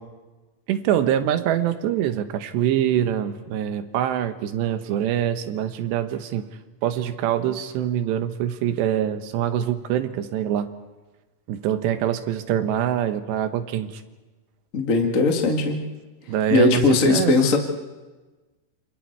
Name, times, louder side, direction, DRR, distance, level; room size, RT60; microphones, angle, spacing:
voice 1, 0.7-6.5 6.8-10.7 11.5-14.0 16.3-17.4, right 10 dB, 85° right, 9 dB, 3.5 m, -24 dB
voice 2, 14.7-15.8 16.5-17.6, left 3 dB, 30° left, 3 dB, 1.6 m, -19 dB
27.5 x 27.5 x 4.7 m, 1.2 s
omnidirectional pair, 4.9 m